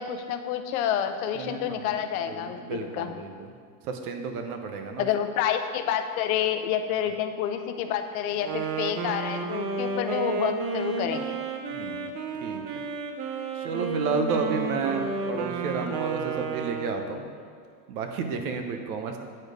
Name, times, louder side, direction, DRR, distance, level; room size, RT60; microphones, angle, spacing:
voice 1, 0.0-3.1 5.0-11.4, left 9 dB, 70° left, 8 dB, 0.7 m, -29 dB
voice 2, 1.3-1.9 2.3-3.5 3.8-5.1 11.7-12.1 12.4-12.6 13.6-17.3 17.9-19.2, right 5 dB, 85° right, 5 dB, 1.0 m, -31 dB
Wind instrument woodwind instrument, 8.3-17.3, right 4 dB, 35° right, 0.6 m, -32 dB
8.7 x 4.4 x 5.0 m, 2.1 s
supercardioid pair, 150°, 43 cm